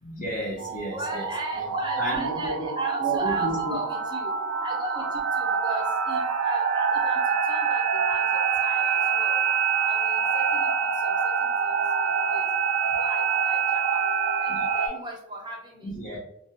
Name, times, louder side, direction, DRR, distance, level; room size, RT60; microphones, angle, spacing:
voice 1, 0.0-1.2 1.6-1.7 2.0-2.7 3.0-3.8 14.5-14.7 15.8-16.2, right 1 dB, 40° left, -7 dB, 0.6 m, -32 dB
sound 1, 0.6-14.9, right 6 dB, 80° right, 0.4 m, -25 dB
voice 2, 0.9-4.3 4.6-7.2 7.5-9.4 9.8-10.7 11.0-11.5 12.0-12.4 13.0-14.0 14.4-16.0, right 1 dB, 20° right, 1 dB, 0.5 m, -37 dB
2.4 x 2.2 x 2.7 m, 0.74 s
head